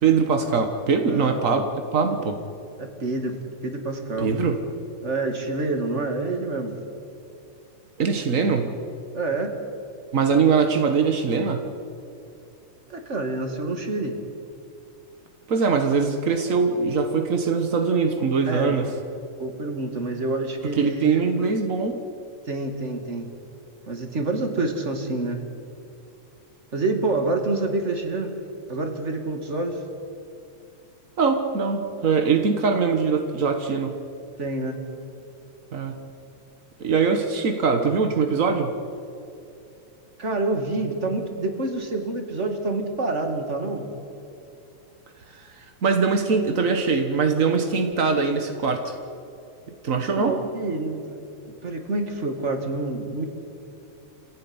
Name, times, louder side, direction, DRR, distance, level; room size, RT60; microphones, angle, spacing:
voice 1, 0.0-2.4 4.2-4.6 8.0-8.7 10.1-11.6 15.5-18.9 20.7-22.0 31.2-33.9 35.7-36.0 36.8-38.7 45.3-49.0 49.8-50.4, right 5 dB, 60° right, 5 dB, 0.8 m, -22 dB
voice 2, 2.8-3.4 3.6-4.3 5.0-6.8 9.1-9.5 12.9-14.2 18.5-18.8 19.4-21.3 22.5-23.3 23.9-25.4 26.7-28.3 28.7-29.8 34.4-34.8 40.2-43.9 50.2-51.2 51.5-53.3, right 2 dB, 25° right, 5 dB, 2.1 m, -27 dB
27.0 x 16.0 x 9.6 m, 2.6 s
omnidirectional pair, 3.5 m